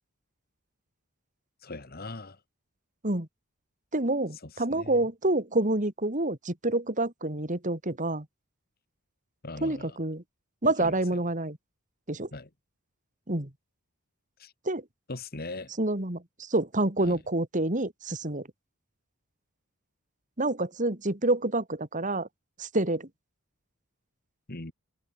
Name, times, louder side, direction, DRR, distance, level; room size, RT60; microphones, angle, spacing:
voice 1, 1.6-2.4 4.7-5.0 9.4-10.0 10.6-11.0 12.3-12.5 14.4-14.5 15.1-15.7 17.0-17.2 24.5-24.7, left 2 dB, 45° left, 2.0 m, -39 dB
voice 2, 3.9-8.3 9.6-10.2 10.6-11.6 12.1-12.3 13.3-13.5 14.6-14.8 15.8-18.5 20.4-22.3 22.6-23.1, right 2 dB, 35° right, 2.6 m, -28 dB
open air
head